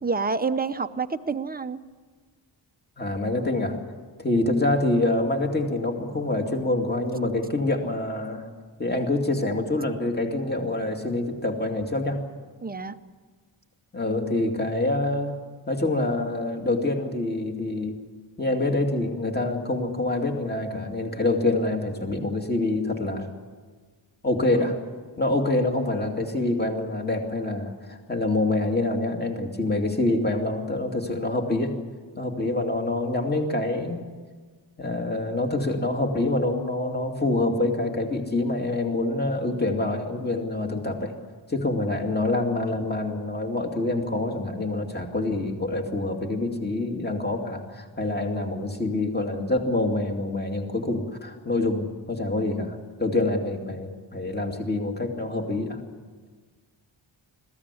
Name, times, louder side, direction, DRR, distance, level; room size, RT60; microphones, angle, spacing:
voice 1, 0.0-1.8 12.6-13.0, right 4 dB, 20° right, 10 dB, 0.7 m, -28 dB
voice 2, 3.0-3.8 4.2-8.5 8.8-12.2 13.9-15.3 15.7-17.9 18.4-23.3 24.2-24.8 25.2-31.7 32.2-34.1 34.8-41.1 41.5-55.8, left 2 dB, 20° left, 3 dB, 2.4 m, -26 dB
21.5 x 15.5 x 9.7 m, 1.5 s
wide cardioid pair, 130°, 48 cm